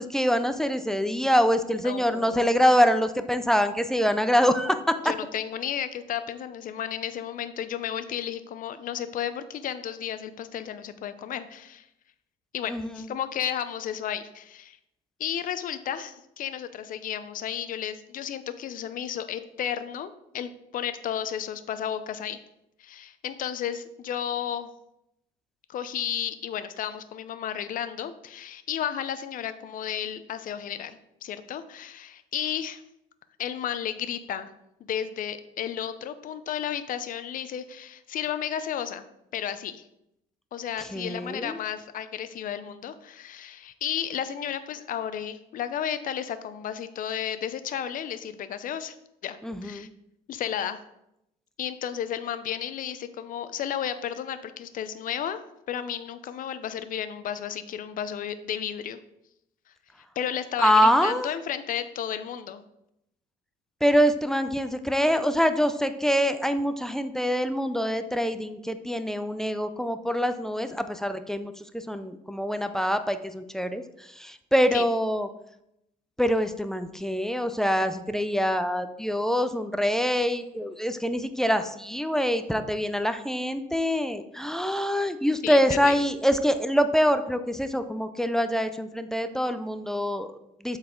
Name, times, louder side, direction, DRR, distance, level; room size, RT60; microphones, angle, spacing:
voice 1, 0.0-5.1 12.7-12.9 40.8-41.6 49.4-49.9 60.6-61.3 63.8-75.3 76.2-90.8, equal, 5° left, 10 dB, 0.4 m, -25 dB
voice 2, 1.7-2.6 5.0-11.9 12.5-14.8 15.2-22.4 22.8-24.7 25.7-32.8 33.4-34.5 34.8-39.1 39.3-39.8 40.5-48.9 49.2-49.9 50.3-50.8 51.6-55.4 55.7-59.0 60.2-62.6 74.7-74.9 85.4-86.0, left 9 dB, 55° left, 12 dB, 0.6 m, -33 dB
7.7 x 4.1 x 3.8 m, 0.82 s
cardioid pair, 110°, 17 cm